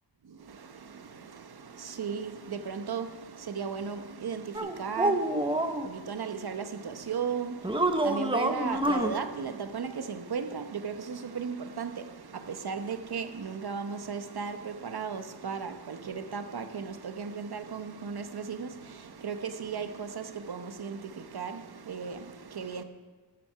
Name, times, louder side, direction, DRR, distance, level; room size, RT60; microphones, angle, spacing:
voice 1, 0.2-22.8, right 6 dB, 60° right, 1.0 m, -36 dB
sound 1, 4.5-5.8 7.6-9.1, right 1 dB, 10° right, 0.9 m, -27 dB
15.5 x 7.9 x 5.7 m
wide cardioid pair, 110°, 43 cm